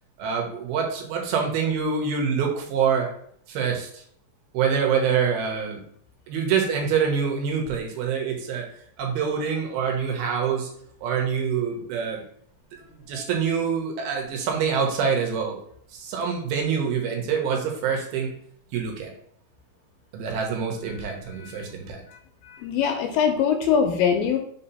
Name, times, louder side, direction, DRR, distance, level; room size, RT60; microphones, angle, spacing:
voice 1, 0.2-3.1 3.5-4.0 4.5-5.8 6.3-8.7 9.0-10.7 11.0-12.2 12.8-15.6 15.9-18.3 18.7-19.1 20.1-22.0 23.6-23.7, right 6 dB, 80° right, 1 dB, 2.9 m, -25 dB
voice 2, 22.5-24.4, left 7 dB, 80° left, 5 dB, 2.3 m, -22 dB
6.2 x 2.9 x 5.4 m, 0.63 s
omnidirectional pair, 4.5 m